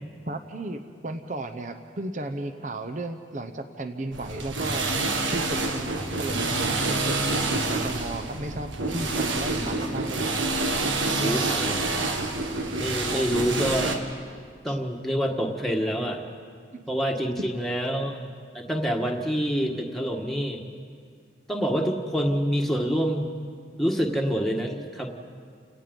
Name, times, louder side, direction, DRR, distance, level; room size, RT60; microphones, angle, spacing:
voice 1, 0.2-4.9 5.3-5.9 6.2-10.4 13.1-13.3 14.7-14.8 16.7-16.8 17.4-17.5, right 2 dB, 40° right, 7 dB, 0.8 m, -34 dB
sound 1, 4.1-14.0, right 2 dB, 85° right, 1.8 m, -27 dB
voice 2, 11.2-12.1 12.8-14.0 14.6-16.2 16.9-18.2 18.5-20.6 21.5-23.2 23.8-25.1, equal, ahead, 0 dB, 1.5 m, -27 dB
30.0 x 18.0 x 5.3 m, 2.1 s
head